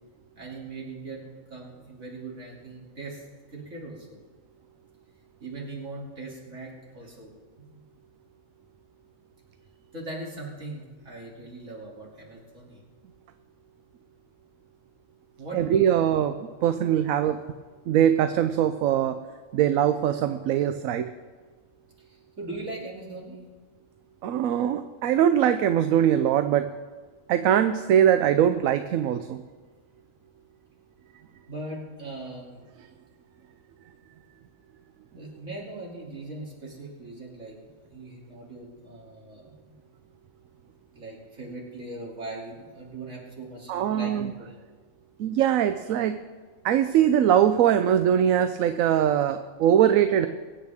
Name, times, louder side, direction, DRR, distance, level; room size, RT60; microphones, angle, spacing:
voice 1, 0.4-1.2 1.5-3.2 3.5-4.2 5.4-7.8 9.9-12.8 15.4-15.8 16.1-16.3 22.0-23.4 31.5-32.6 35.1-37.6 37.9-39.7 40.9-44.6, right 2 dB, 60° right, -3 dB, 3.1 m, -40 dB
voice 2, 15.5-16.3 16.6-17.4 17.9-19.2 19.5-21.1 24.2-26.7 27.3-29.4 43.7-44.3 45.2-46.2 46.6-50.3, right 10 dB, 80° right, 10 dB, 1.0 m, -22 dB
23.0 x 8.9 x 3.5 m, 1.4 s
omnidirectional pair, 1.4 m